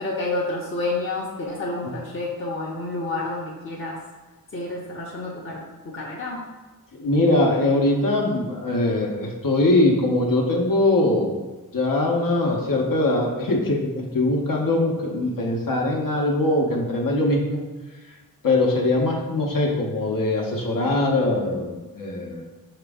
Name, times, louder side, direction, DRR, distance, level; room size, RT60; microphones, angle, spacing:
voice 1, 0.0-4.0 4.5-6.4, left 2 dB, 35° left, -5 dB, 0.7 m, -29 dB
voice 2, 6.9-11.3 11.7-17.6 18.4-22.4, left 2 dB, 60° left, -1 dB, 0.8 m, -22 dB
5.0 x 2.9 x 3.5 m, 1.2 s
wide cardioid pair, 75°, 37 cm